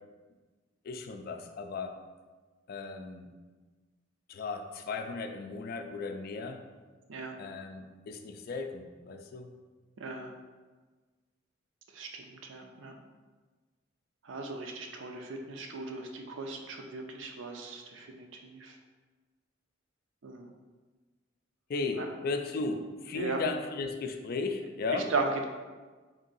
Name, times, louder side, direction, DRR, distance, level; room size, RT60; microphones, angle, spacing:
voice 1, 0.8-2.0 2.7-3.3 4.3-6.6 7.4-9.5 21.7-25.1, left 3 dB, 50° left, 6 dB, 0.3 m, -36 dB
voice 2, 10.0-10.3 11.9-12.9 14.2-18.8 20.2-20.5 21.9-22.1 23.1-23.4 24.9-25.4, right 3 dB, 70° right, 3 dB, 0.5 m, -37 dB
3.7 x 2.7 x 3.9 m, 1.3 s
head